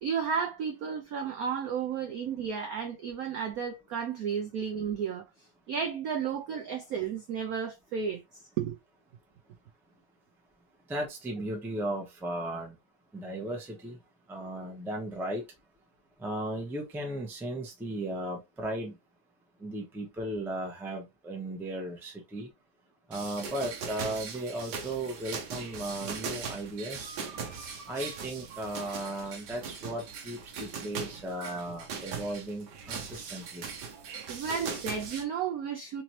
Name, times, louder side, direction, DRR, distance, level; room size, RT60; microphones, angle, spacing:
voice 1, 0.0-5.2 5.7-8.2 8.6-8.8 27.0-27.9 28.5-28.6 31.3-31.6 33.9-34.0 34.3-36.0, right 7 dB, 80° right, 0.7 m, -33 dB
voice 2, 10.9-12.7 13.1-14.0 14.3-15.4 16.2-18.9 19.6-22.5 23.1-27.1 27.9-33.6, right 1 dB, 5° right, 0.4 m, -36 dB
sound 1, 23.1-35.2, right 6 dB, 65° right, 1.3 m, -40 dB
4.0 x 3.1 x 2.9 m
omnidirectional pair, 2.2 m